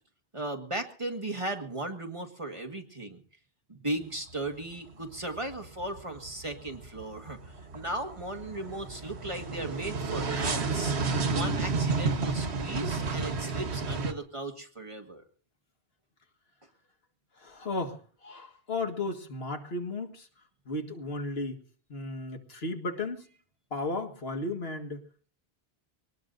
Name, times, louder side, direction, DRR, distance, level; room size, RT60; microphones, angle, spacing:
voice 1, 0.3-3.2 3.7-11.0 11.3-15.2, right 1 dB, 30° right, 4 dB, 1.7 m, -36 dB
sound 1, 4.0-4.6 4.9-14.1, right 4 dB, 90° right, 1.4 m, -31 dB
voice 2, 11.0-11.4 17.4-20.3 20.7-21.6 21.9-23.3 23.7-25.0, left 2 dB, 70° left, 4 dB, 2.0 m, -35 dB
24.0 x 19.0 x 2.6 m, 0.41 s
omnidirectional pair, 1.1 m